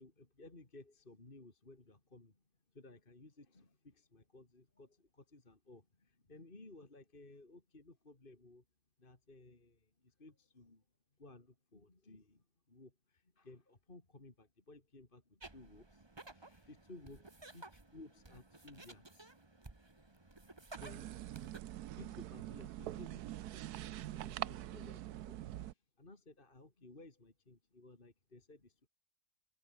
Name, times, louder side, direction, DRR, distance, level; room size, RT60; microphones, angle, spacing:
voice 1, 0.0-2.4 2.7-8.6 9.0-10.8 11.2-19.6 20.8-21.2 21.7-23.6 24.1-28.9, left 2 dB, 30° left, 3.2 m, -58 dB
sound 1, 15.4-21.6, right 2 dB, 15° right, 1.5 m, -55 dB
sound 2, 20.8-25.7, right 13 dB, 75° right, 1.2 m, -44 dB
omnidirectional pair, 1.7 m